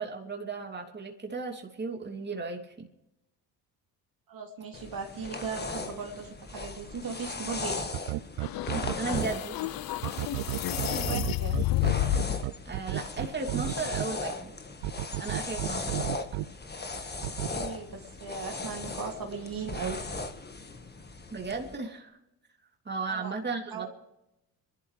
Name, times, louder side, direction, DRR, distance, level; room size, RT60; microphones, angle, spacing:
voice 1, 0.0-2.9 9.0-9.6 12.6-14.5 15.2-16.1 21.3-22.2 22.8-23.9, right 4 dB, 25° right, 1 dB, 2.9 m, -35 dB
voice 2, 4.3-7.8 10.7-11.6 17.5-20.0 23.1-23.3 23.7-23.9, right 5 dB, 50° right, 1 dB, 2.7 m, -37 dB
sound 1, 4.7-21.8, left 3 dB, 20° left, 1.6 m, -38 dB
sound 2, 7.9-9.2 10.0-14.0 14.8-16.4 17.2-17.5, right 17 dB, 65° right, 0.6 m, -32 dB
sound 3, 8.4-12.4, left 17 dB, 50° left, 0.6 m, -31 dB
25.5 x 12.0 x 3.3 m, 0.87 s
supercardioid pair, 65°, 45 cm